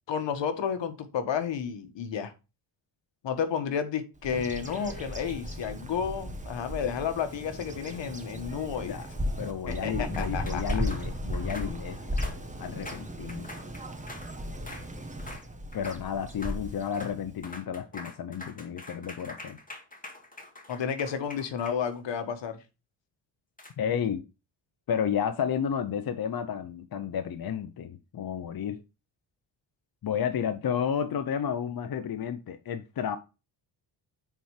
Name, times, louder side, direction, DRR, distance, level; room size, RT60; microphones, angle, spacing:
voice 1, 0.1-2.3 3.2-8.9 9.7-10.6 20.7-22.6, left 7 dB, 75° left, 1.6 m, -31 dB
Bird vocalization bird call bird song, 4.2-17.5, equal, 15° right, 1.6 m, -36 dB
sound 1, 4.6-5.5 7.5-8.5 10.1-14.3 14.7-14.9 15.2-15.5 15.7-16.0 16.3-16.6 16.9-17.2 17.4-22.2 23.6-23.7, left 2 dB, 20° left, 2.2 m, -45 dB
voice 2, 9.4-12.3 12.6-13.5 15.7-19.6 23.8-24.2 24.9-28.8 30.0-33.2, left 8 dB, 50° left, 0.9 m, -32 dB
9.1 x 4.4 x 4.9 m
cardioid pair, 90°, 44 cm